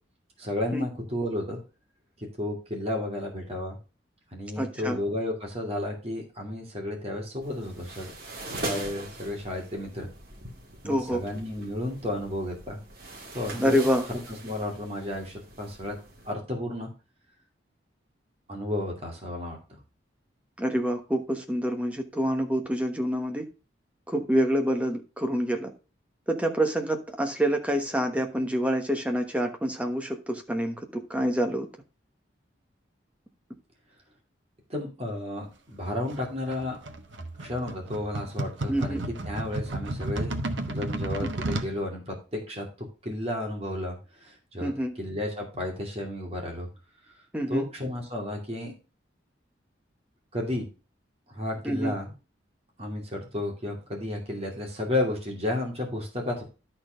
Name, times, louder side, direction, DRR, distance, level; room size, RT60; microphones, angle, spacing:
voice 1, 0.4-1.6 2.2-3.8 4.3-8.1 8.5-10.1 10.8-12.8 13.3-16.0 16.3-16.9 18.5-19.8 34.7-36.8 37.4-39.0 39.3-40.3 40.7-42.7 43.0-44.7 45.0-46.7 47.5-48.7 50.3-50.7 51.3-52.1 52.8-56.4, left 1 dB, 30° right, 0 dB, 2.4 m, -32 dB
voice 2, 4.6-5.0 10.8-11.2 13.6-14.0 20.6-23.4 24.1-25.7 26.3-31.7 38.7-39.1 41.2-41.3 44.6-44.9 47.3-47.7 51.6-51.9, equal, 5° right, 4 dB, 1.2 m, -27 dB
sound 1, 7.4-16.3, right 2 dB, 50° right, 2.0 m, -41 dB
sound 2, 36.1-41.7, right 1 dB, 75° right, 1.1 m, -33 dB
11.5 x 4.4 x 5.1 m, 0.32 s
head